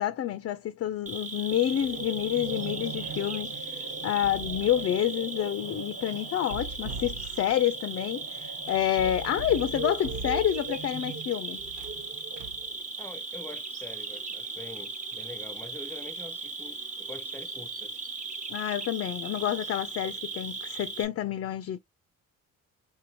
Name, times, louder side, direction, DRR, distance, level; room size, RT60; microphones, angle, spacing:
voice 1, 0.0-11.6 18.5-21.8, left 11 dB, 50° left, 0.4 m, -28 dB
Cricket, 1.1-21.1, right 3 dB, 25° right, 0.9 m, -38 dB
sound 1, 1.5-12.8, right 3 dB, 40° right, 1.2 m, -41 dB
sound 2, 1.8-2.1 4.0-4.9 6.4-7.7 8.7-10.9 11.6-12.7, right 3 dB, 75° right, 0.7 m, -41 dB
voice 2, 13.0-17.9, left 2 dB, 5° left, 0.6 m, -45 dB
3.7 x 2.6 x 2.8 m
cardioid pair, 90°, 30 cm